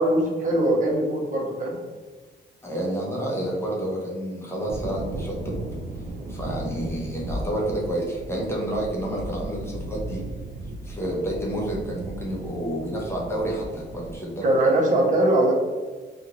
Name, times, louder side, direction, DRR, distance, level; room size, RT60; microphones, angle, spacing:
voice 1, 0.0-1.8 14.4-15.5, right 1 dB, 40° right, -3 dB, 0.9 m, -21 dB
voice 2, 2.6-5.6 6.3-10.2 10.8-14.5, right 1 dB, 15° left, -3 dB, 0.8 m, -29 dB
sound 1, 4.7-14.2, right 1 dB, 65° right, 0.5 m, -36 dB
2.5 x 2.5 x 3.0 m, 1.4 s
cardioid pair, 90°, 19 cm